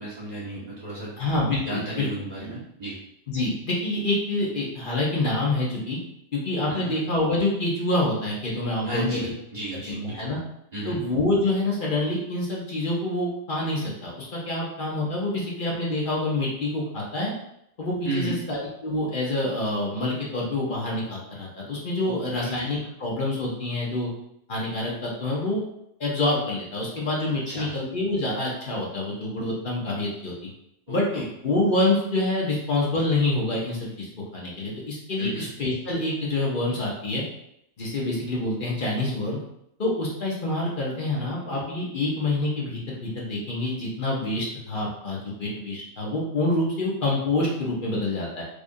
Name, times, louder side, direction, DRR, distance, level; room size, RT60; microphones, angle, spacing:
voice 1, 0.0-1.1 1.6-3.0 6.7-6.9 8.8-10.4 10.7-11.0 18.0-18.4 22.0-22.7 27.5-27.7 30.9-31.2 35.2-35.5, right 1 dB, 35° right, -7 dB, 1.1 m, -33 dB
voice 2, 1.2-2.1 2.4-2.5 3.3-6.0 6.3-9.3 9.7-10.4 10.8-17.3 17.8-24.1 24.5-25.6 26.0-30.5 30.9-34.1 34.3-37.2 37.8-39.4 39.8-48.4, left 2 dB, 45° left, -4 dB, 1.0 m, -27 dB
4.9 x 2.4 x 2.6 m, 0.78 s
omnidirectional pair, 1.2 m